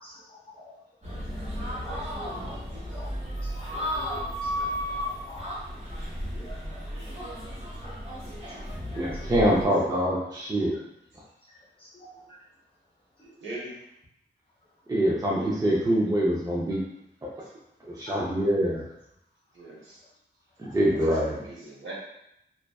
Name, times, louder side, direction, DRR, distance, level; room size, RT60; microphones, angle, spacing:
voice 1, 0.0-0.7 1.2-2.0 2.4-2.5 2.9-5.4 6.3-7.3 7.8-7.9 8.5-8.6 8.9-9.2 11.5-12.4 13.2-13.4 18.1-18.3 20.7-20.8, left 1 dB, 25° left, -5 dB, 0.7 m, -49 dB
sound 1, 1.0-9.6, equal, 35° right, 1.1 m, -34 dB
voice 2, 9.0-10.7 14.9-16.8 17.8-18.9 20.6-21.3, equal, 20° right, -4 dB, 0.4 m, -24 dB
voice 3, 13.4-13.8 17.4-17.5 19.5-20.0 20.9-21.9, right 2 dB, 85° right, -5 dB, 0.8 m, -40 dB
2.5 x 2.2 x 2.3 m, 0.81 s
wide cardioid pair, 115°, 19 cm